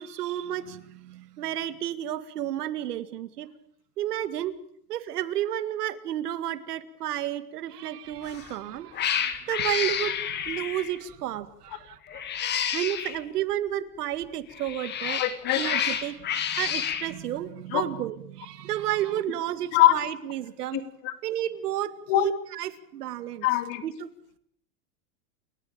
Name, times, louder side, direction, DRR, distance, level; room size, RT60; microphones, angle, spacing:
voice 1, 0.0-3.5 4.0-4.6 4.9-12.3 12.7-15.2 15.5-20.8 21.2-23.5 23.8-24.1, right 12 dB, 85° right, 12 dB, 2.2 m, -32 dB
Cat, 8.2-8.5 8.9-11.0 12.1-13.2 14.5-17.1, left 9 dB, 20° left, 2.0 m, -29 dB
voice 2, 15.2-15.6 17.7-17.9 19.7-20.0 20.7-21.1 22.1-22.3 23.4-23.8, left 14 dB, 45° left, 10 dB, 2.8 m, -22 dB
29.5 x 14.0 x 8.8 m, 0.67 s
supercardioid pair, 155°, 45 cm